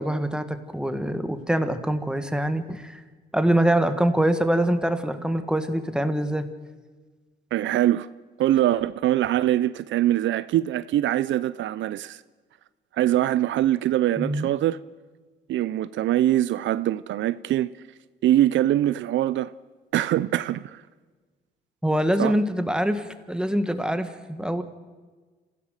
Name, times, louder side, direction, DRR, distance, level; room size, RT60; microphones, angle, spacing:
voice 1, 0.0-3.0 3.3-6.5 14.2-14.5 21.8-24.6, right 1 dB, 5° right, 1.6 m, -24 dB
voice 2, 7.5-8.1 8.4-12.2 12.9-14.8 15.5-17.7 18.2-19.5 19.9-20.8 22.2-22.4, right 13 dB, 70° right, 0.5 m, -23 dB
27.5 x 15.5 x 6.5 m
cardioid pair, 90°, 20 cm